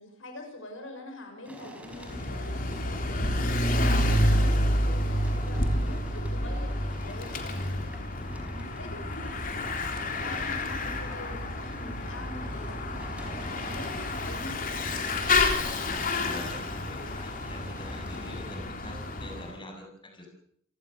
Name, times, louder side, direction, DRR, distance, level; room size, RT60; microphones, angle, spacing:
voice 1, 0.0-9.3 9.7-14.5, left 1 dB, 75° left, 4 dB, 6.3 m, -45 dB
sound 1, 1.4-18.4, equal, 5° right, 5.0 m, -49 dB
Bicycle / Mechanisms, 1.9-19.5, left 1 dB, 40° left, 3.6 m, -29 dB
voice 2, 15.6-20.3, left 1 dB, 25° left, 2 dB, 7.5 m, -44 dB
29.0 x 19.0 x 6.9 m, 0.67 s
head